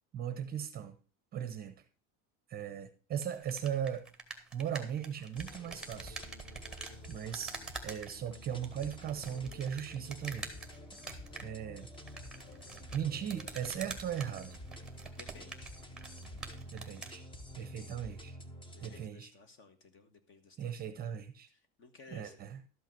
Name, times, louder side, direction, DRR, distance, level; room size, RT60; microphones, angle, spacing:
voice 1, 0.1-1.0 1.3-1.8 2.5-4.1 4.5-6.2 7.1-7.5 7.8-10.5 11.4-11.9 12.9-14.6 16.7-17.2 17.6-18.3 18.8-19.3 20.6-21.5 22.1-22.6, right 9 dB, 25° right, 11 dB, 0.8 m, -38 dB
sound 1, 3.2-17.2, right 4 dB, ahead, 1.5 m, -47 dB
sound 2, 5.4-19.0, left 1 dB, 15° left, 0.8 m, -49 dB
voice 2, 15.1-15.7 17.5-18.1 18.7-20.8 21.5-22.4, left 4 dB, 35° left, 9 dB, 1.5 m, -57 dB
12.5 x 5.7 x 6.0 m, 0.37 s
cardioid pair, 170°, 35 cm